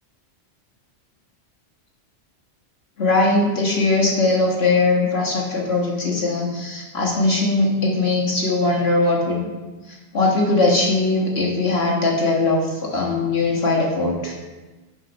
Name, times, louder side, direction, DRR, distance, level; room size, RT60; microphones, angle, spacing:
voice 1, 3.0-9.5 10.1-14.3, left 2 dB, 55° left, -3 dB, 1.8 m, -20 dB
6.7 x 5.9 x 5.2 m, 1.2 s
omnidirectional pair, 1.2 m